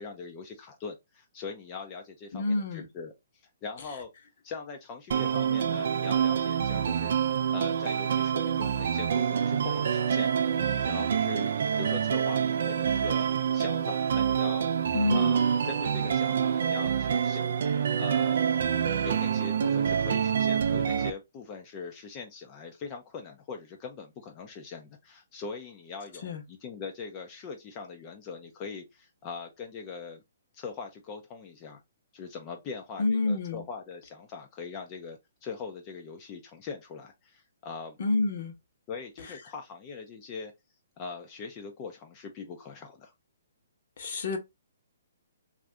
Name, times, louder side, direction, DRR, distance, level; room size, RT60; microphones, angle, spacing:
voice 1, 0.0-3.1 3.6-4.1 4.4-7.2 7.5-14.7 15.1-17.6 18.0-18.4 19.0-30.2 30.5-31.8 32.1-38.0 38.9-40.5 41.0-43.1, left 5 dB, 25° left, 0.4 m, -41 dB
voice 2, 2.3-2.9 14.9-15.4 26.2-26.4 33.0-33.6 38.0-38.5 39.2-39.4 44.0-44.4, left 2 dB, 55° left, 0.8 m, -28 dB
sound 1, 5.1-21.1, right 8 dB, 65° right, 0.3 m, -27 dB
2.5 x 2.4 x 3.1 m
hypercardioid pair, 155°, 0 cm